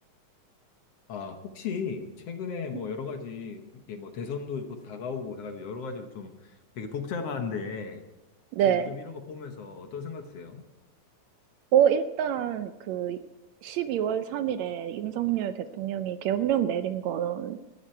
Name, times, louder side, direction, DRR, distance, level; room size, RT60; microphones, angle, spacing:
voice 1, 1.1-8.0 8.6-10.7, left 5 dB, 60° left, 6 dB, 2.0 m, -36 dB
voice 2, 8.5-8.9 11.7-13.2 13.6-17.6, right 10 dB, 75° right, 10 dB, 1.8 m, -26 dB
20.5 x 12.5 x 4.5 m, 1.0 s
omnidirectional pair, 3.5 m